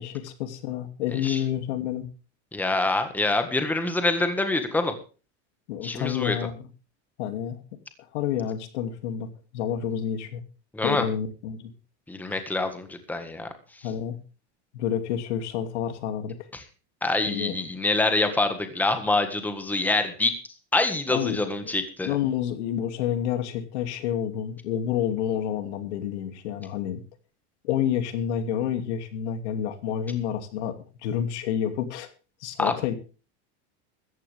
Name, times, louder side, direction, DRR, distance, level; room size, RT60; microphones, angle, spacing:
voice 1, 0.0-2.1 5.7-6.7 7.2-7.6 8.1-10.4 10.8-11.7 12.3-12.4 13.8-14.2 14.7-16.5 17.3-17.6 21.1-21.4 21.6-21.7 22.0-27.0 27.6-30.8 31.0-32.1 32.4-32.9, left 9 dB, 85° left, 8 dB, 2.7 m, -29 dB
voice 2, 2.5-4.9 5.8-6.4 10.7-11.0 12.1-13.5 16.5-16.6 17.0-20.3 20.7-22.1 32.6-32.7, left 2 dB, 5° left, 7 dB, 1.7 m, -25 dB
16.0 x 14.0 x 3.5 m, 0.35 s
supercardioid pair, 155°, 33 cm